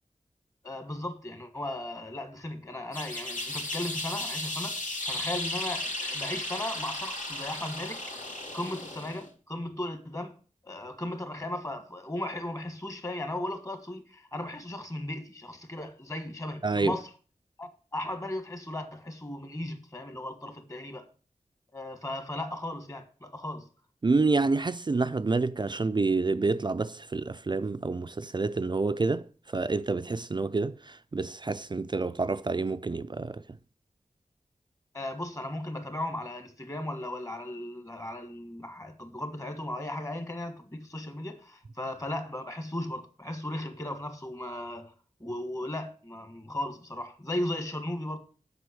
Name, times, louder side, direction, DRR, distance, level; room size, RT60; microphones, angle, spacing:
voice 1, 0.6-8.0 8.5-10.3 10.6-17.1 17.6-21.1 21.7-23.7 34.9-44.9 45.2-48.2, left 1 dB, 25° left, 1.5 m, -36 dB
sound 1, 2.9-9.3, left 1 dB, 85° left, 2.5 m, -35 dB
voice 2, 16.6-17.0 24.0-33.4, right 3 dB, 35° right, 0.4 m, -28 dB
7.7 x 5.5 x 7.0 m
wide cardioid pair, 75°, 13 cm